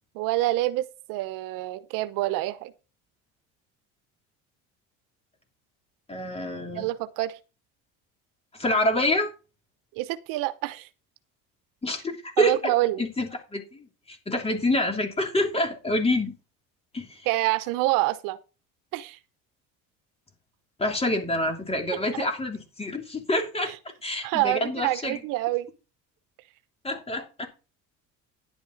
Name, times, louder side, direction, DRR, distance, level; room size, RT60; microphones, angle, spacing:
voice 1, 0.1-2.7 6.7-7.4 10.0-10.9 12.4-13.0 17.3-18.4 18.9-19.2 23.7-23.8 24.2-25.7, right 17 dB, 80° right, 0.9 m, -26 dB
voice 2, 6.1-6.9 8.5-9.3 11.8-12.6 13.0-16.3 16.9-17.2 20.8-23.7 24.0-25.2 26.8-27.5, left 1 dB, 20° left, 3.0 m, -27 dB
10.5 x 8.7 x 4.0 m
cardioid pair, 115°, 33 cm